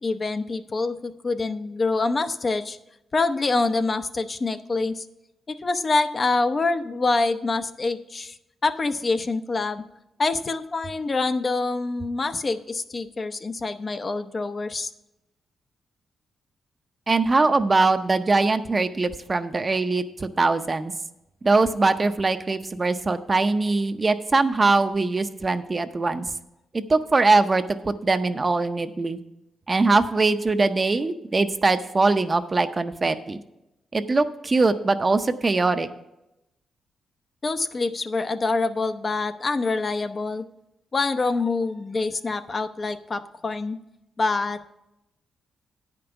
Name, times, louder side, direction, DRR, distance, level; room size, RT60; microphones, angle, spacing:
voice 1, 0.0-2.8 3.1-5.0 5.5-8.4 8.6-9.8 10.2-14.9 37.4-40.5 40.9-43.8 44.2-44.7, left 3 dB, 40° left, 9 dB, 0.6 m, -26 dB
voice 2, 17.1-20.9 21.4-26.2 26.7-29.2 29.7-33.4 33.9-35.9, right 3 dB, 35° right, 9 dB, 0.6 m, -22 dB
9.3 x 5.3 x 6.9 m, 0.89 s
cardioid pair, 65°, 0 cm